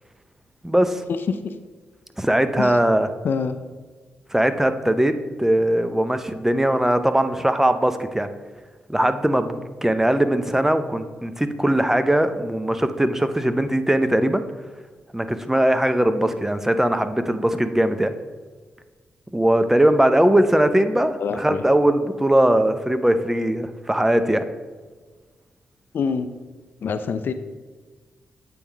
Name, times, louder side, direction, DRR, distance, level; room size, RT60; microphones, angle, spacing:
voice 1, 0.6-1.0 2.2-3.1 4.3-8.3 8.9-14.4 15.1-18.1 19.3-24.5, right 1 dB, 10° right, 10 dB, 0.6 m, -20 dB
voice 2, 1.3-1.6 2.6-2.8 3.2-3.6 21.2-21.6 25.9-26.3 26.8-27.3, left 5 dB, 70° left, 10 dB, 0.5 m, -25 dB
8.5 x 3.6 x 4.6 m, 1.4 s
supercardioid pair, 50°, 4 cm